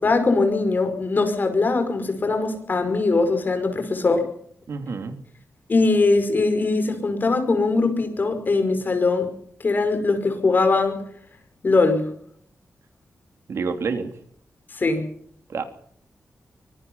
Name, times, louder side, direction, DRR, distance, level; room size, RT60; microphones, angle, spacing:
voice 1, 0.0-4.3 5.7-9.3 9.6-11.0 11.6-12.1 14.7-15.1, left 3 dB, 40° left, 7 dB, 5.5 m, -21 dB
voice 2, 4.7-5.2 13.5-14.1 15.5-15.6, right 5 dB, 70° right, 7 dB, 3.1 m, -28 dB
24.5 x 20.0 x 5.6 m, 0.66 s
wide cardioid pair, 120°, 5 cm